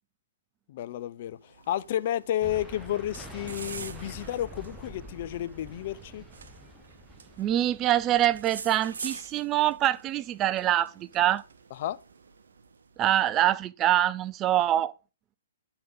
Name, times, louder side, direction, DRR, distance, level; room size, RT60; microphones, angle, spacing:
voice 1, 0.7-6.2 11.8-12.0, left 12 dB, 50° left, 0.4 m, -31 dB
sound 1, 1.4-13.2, right 5 dB, 75° right, 0.8 m, -46 dB
sound 2, 2.4-9.4, right 1 dB, 5° right, 0.9 m, -47 dB
voice 2, 7.4-11.4 13.0-14.9, right 12 dB, 25° right, 0.3 m, -25 dB
9.2 x 3.9 x 3.9 m
hypercardioid pair, 125°, 0 cm